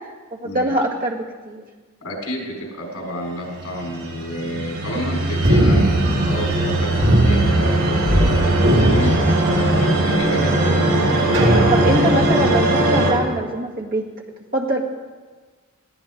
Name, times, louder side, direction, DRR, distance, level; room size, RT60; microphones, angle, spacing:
voice 1, 0.3-1.6 11.7-14.1 14.5-14.8, right 1 dB, 40° right, -1 dB, 2.2 m, -23 dB
voice 2, 2.0-11.0, equal, 80° left, -1 dB, 5.1 m, -30 dB
sound 1, 3.4-13.1, right 1 dB, 85° right, 6.6 m, -20 dB
sound 2, 5.4-6.7 7.0-8.3 8.6-9.9 10.5-10.6 11.3-12.2, right 1 dB, 60° right, 4.1 m, -19 dB
21.5 x 16.0 x 3.8 m, 1.4 s
head